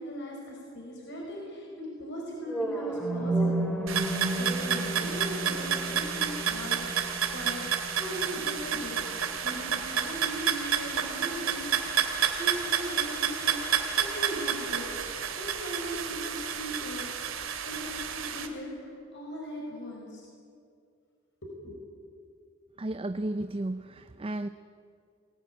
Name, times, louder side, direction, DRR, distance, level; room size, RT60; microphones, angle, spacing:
voice 1, 0.0-3.7 3.9-9.0 9.4-17.1 17.6-20.2 21.4-21.7, equal, 60° left, -2 dB, 5.2 m, -39 dB
sound 1, 2.4-10.5, right 2 dB, 5° left, 2.4 m, -33 dB
sound 2, 3.9-18.5, right 8 dB, 90° right, 2.3 m, -30 dB
voice 2, 22.8-24.5, right 1 dB, 30° right, 10 dB, 0.6 m, -33 dB
23.0 x 17.5 x 9.2 m, 2.4 s
head